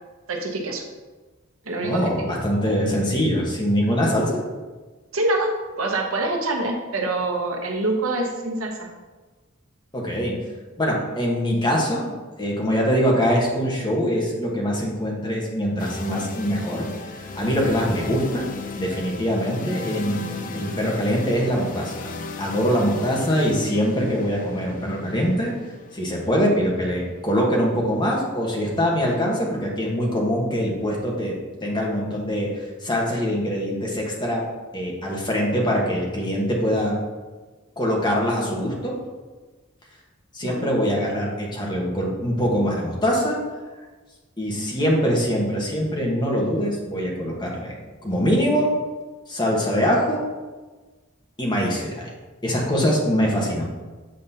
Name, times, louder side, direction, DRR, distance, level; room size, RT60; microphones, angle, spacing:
voice 1, 0.3-0.8 1.6-2.3 5.1-8.9 40.4-40.7, right 2 dB, 75° right, 2 dB, 1.0 m, -25 dB
voice 2, 1.8-4.4 9.9-10.3 10.8-12.1 12.4-16.9 17.2-18.4 18.8-22.1 22.4-25.5 25.9-31.3 31.6-32.5 32.8-34.4 34.7-37.0 37.8-38.9 40.3-43.4 44.4-47.8 48.0-48.7 49.3-50.2 51.4-52.1 52.4-53.7, equal, 20° left, -2 dB, 1.2 m, -23 dB
sound 1, 15.8-29.6, left 3 dB, 40° left, 0.4 m, -37 dB
7.8 x 5.2 x 2.8 m, 1.3 s
head